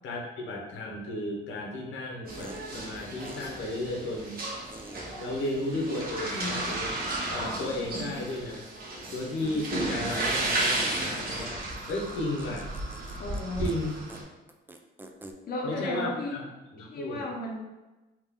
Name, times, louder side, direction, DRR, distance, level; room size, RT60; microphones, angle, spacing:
voice 1, 0.0-4.4 5.2-6.9 7.3-8.6 9.1-11.6 11.9-12.7 13.6-13.9 15.6-16.4 16.7-17.2, left 1 dB, 75° left, -2 dB, 0.9 m, -34 dB
sound 1, 2.3-14.2, right 2 dB, 50° right, 1.2 m, -33 dB
sound 2, 2.4-2.6 3.3-3.4 4.7-5.0 6.6-7.3 7.6-8.5 9.4-9.7 10.8-13.4 13.7-13.8 14.1-14.2 14.5-15.3, right 2 dB, 10° right, 0.3 m, -47 dB
voice 2, 6.2-6.7 13.2-13.7 15.5-16.4 16.8-17.6, left 2 dB, 50° left, -2 dB, 0.7 m, -34 dB
3.6 x 2.5 x 3.6 m, 1.1 s
cardioid pair, 90°, 20 cm